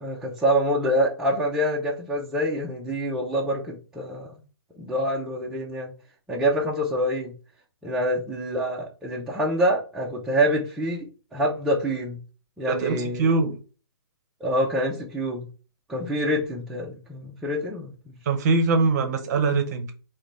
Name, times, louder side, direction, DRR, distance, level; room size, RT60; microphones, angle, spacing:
voice 1, 0.0-4.4 4.8-5.9 6.3-7.3 7.8-11.1 11.3-12.2 12.6-13.3 14.4-15.5 15.9-18.1, equal, 5° right, -4 dB, 0.4 m, -26 dB
voice 2, 12.7-13.6 18.3-19.9, right 3 dB, 40° right, 6 dB, 0.7 m, -22 dB
3.8 x 2.2 x 3.1 m, 0.35 s
hypercardioid pair, 140°, 14 cm